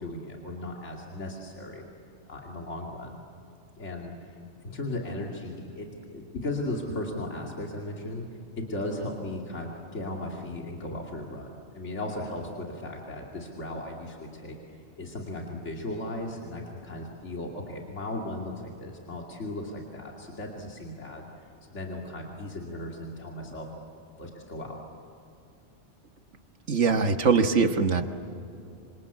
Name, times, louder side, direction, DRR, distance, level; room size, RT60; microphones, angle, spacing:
voice 1, 0.0-1.8 2.3-3.1 3.8-4.3 4.6-8.2 8.6-14.6 15.0-21.2 21.6-23.7 24.2-24.8, left 1 dB, 75° left, -1 dB, 2.9 m, -36 dB
voice 2, 26.7-28.0, right 5 dB, 80° right, 7 dB, 1.7 m, -22 dB
27.0 x 26.5 x 8.3 m, 2.8 s
omnidirectional pair, 1.2 m